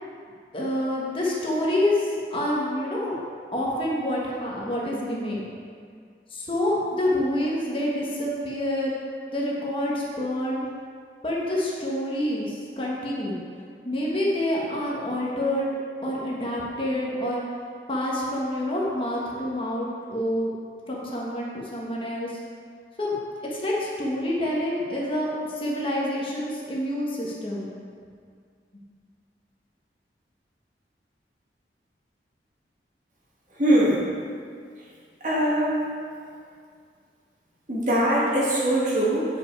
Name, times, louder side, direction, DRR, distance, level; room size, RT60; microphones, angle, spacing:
voice 1, 0.5-3.2 3.5-5.4 6.3-8.9 9.3-10.6 11.2-13.4 13.8-15.8 16.0-17.4 17.9-20.5 20.9-22.3 23.0-23.2 23.5-27.6, left 1 dB, 30° left, -5 dB, 1.3 m, -27 dB
voice 2, 33.6-34.0 35.2-35.8 37.7-39.3, right 1 dB, 45° right, -6 dB, 1.8 m, -22 dB
8.8 x 5.4 x 4.7 m, 2.1 s
head